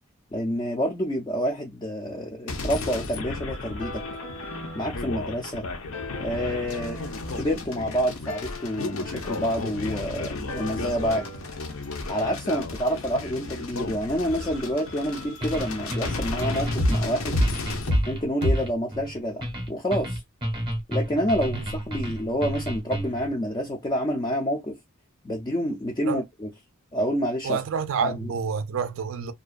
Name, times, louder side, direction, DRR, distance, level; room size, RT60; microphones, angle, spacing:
voice 1, 0.3-4.0 4.7-5.7 6.2-7.0 7.3-11.3 12.1-17.4 18.1-20.2 20.9-24.8 25.2-26.5 26.9-27.6 28.0-28.3, equal, 20° left, 0.3 m, -28 dB
sound 1, 2.5-17.9, left 3 dB, 65° left, 0.6 m, -34 dB
sound 2, 3.8-5.5 5.9-8.0 8.3-10.2 10.5-14.2 16.8-17.0 17.3-17.5 17.9-18.1 18.4-18.6, left 1 dB, 85° left, 1.3 m, -32 dB
sound 3, 15.4-23.3, equal, 20° right, 0.7 m, -31 dB
voice 2, 27.4-29.3, right 6 dB, 60° right, 0.3 m, -28 dB
2.4 x 2.2 x 2.4 m
head